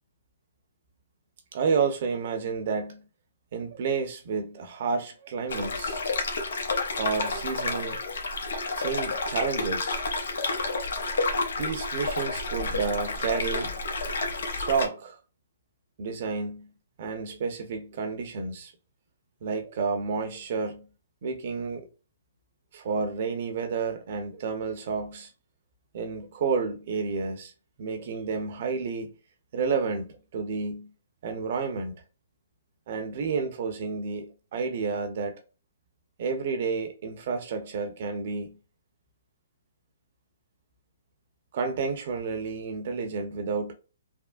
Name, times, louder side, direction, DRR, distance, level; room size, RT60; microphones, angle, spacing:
voice 1, 1.5-3.0 3.5-6.0 7.0-8.0 8.7-10.0 11.6-13.7 14.5-15.2 16.0-16.7 17.0-18.7 19.4-20.9 21.2-21.9 22.7-25.3 25.9-27.5 27.8-29.1 29.5-30.9 31.2-32.0 32.9-35.4 36.2-38.6 41.5-43.7, right 5 dB, 50° right, 0.8 m, -30 dB
sound 1, 5.5-14.9, left 3 dB, 75° left, 0.8 m, -30 dB
3.5 x 2.1 x 2.4 m
hypercardioid pair, 145°, 0 cm